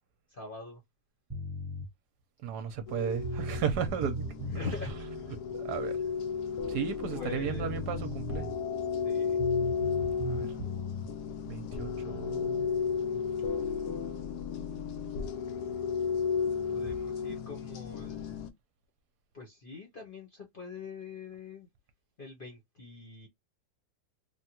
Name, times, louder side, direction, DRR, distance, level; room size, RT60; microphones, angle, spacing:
voice 1, 0.3-0.8 4.5-4.9 5.8-6.0 7.1-8.1 9.0-9.4 16.7-18.5 19.3-21.7 22.2-23.3, left 3 dB, 40° left, 0.8 m, -43 dB
sound 1, 1.3-1.9 2.9-3.0 3.2-4.9 7.1-7.2 7.4-8.6 9.4-11.1, equal, 20° right, 0.7 m, -37 dB
voice 2, 2.4-4.2 4.6-4.7 5.5-6.0 6.7-8.5 10.2-10.5 11.5-12.7, right 8 dB, 70° right, 1.1 m, -34 dB
sound 2, 2.9-18.5, left 6 dB, 75° left, 1.0 m, -34 dB
3.5 x 2.1 x 2.8 m
omnidirectional pair, 1.9 m